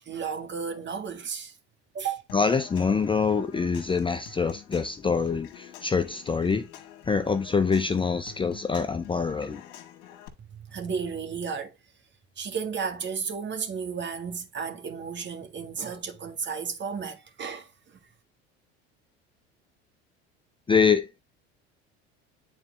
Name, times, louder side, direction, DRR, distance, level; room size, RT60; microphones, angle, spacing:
voice 1, 0.0-1.5 1.9-2.2 10.5-11.8 12.4-17.7, right 6 dB, 35° right, 1.8 m, -33 dB
Human voice / Acoustic guitar / Percussion, 2.3-10.3, left 9 dB, 65° left, 1.7 m, -48 dB
voice 2, 2.3-6.7 7.1-9.6 20.7-21.2, left 5 dB, 15° left, 0.6 m, -25 dB
9.0 x 4.2 x 3.3 m
hypercardioid pair, 80°, 33 cm